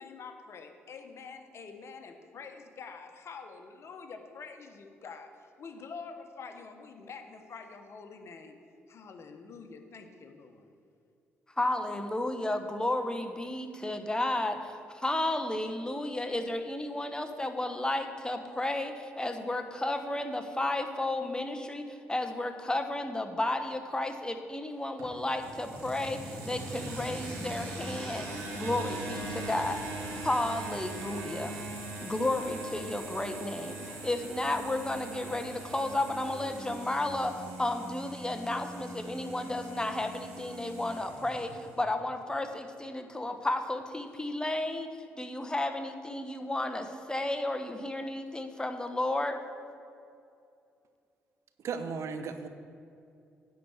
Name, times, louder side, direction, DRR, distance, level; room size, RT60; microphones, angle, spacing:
voice 1, 0.0-8.6 8.9-10.7, left 5 dB, 55° left, 6 dB, 1.1 m, -46 dB
voice 2, 11.6-29.8 30.1-31.5 32.0-44.9 45.2-49.4, left 1 dB, 15° left, 6 dB, 1.1 m, -33 dB
sound 1, 25.0-41.7, right 2 dB, 85° right, 2.4 m, -41 dB
voice 3, 51.6-52.5, right 5 dB, 65° right, 8 dB, 0.8 m, -35 dB
10.0 x 4.7 x 8.0 m, 2.5 s
hypercardioid pair, 50°, 5 cm